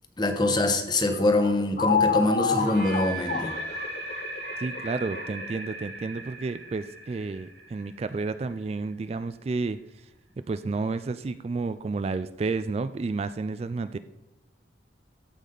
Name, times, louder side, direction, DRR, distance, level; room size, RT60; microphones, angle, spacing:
voice 1, 0.2-3.5, left 2 dB, 25° left, 6 dB, 1.1 m, -24 dB
sound 1, 1.1-5.7, left 5 dB, 45° left, 0.7 m, -28 dB
sound 2, 2.5-8.5, right 2 dB, 80° right, 1.9 m, -38 dB
voice 2, 4.6-9.8 10.5-14.0, right 3 dB, 35° right, 12 dB, 0.3 m, -31 dB
14.5 x 5.3 x 3.9 m, 0.98 s
head